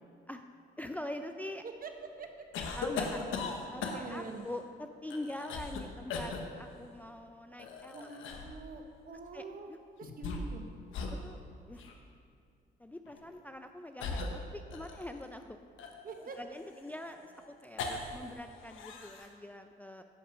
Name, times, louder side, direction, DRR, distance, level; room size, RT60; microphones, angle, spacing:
voice 1, 0.8-1.6 2.8-3.2 3.7-8.1 9.3-9.8 11.1-11.8 12.8-15.6 16.2-20.0, left 1 dB, 10° left, 6 dB, 0.4 m, -44 dB
sound 1, 2.5-4.3 5.1-5.8 6.1-6.4 7.6-8.6 10.0-10.6 10.9-11.2 11.8-12.0 13.1-13.2 14.0-15.2 15.8-18.3 18.6-19.3, left 4 dB, 85° left, 1.1 m, -38 dB
voice 2, 3.9-4.5 7.9-10.7 16.0-16.6, right 4 dB, 45° right, 5 dB, 1.2 m, -45 dB
10.5 x 5.8 x 6.1 m, 2.3 s
cardioid pair, 90°, 20 cm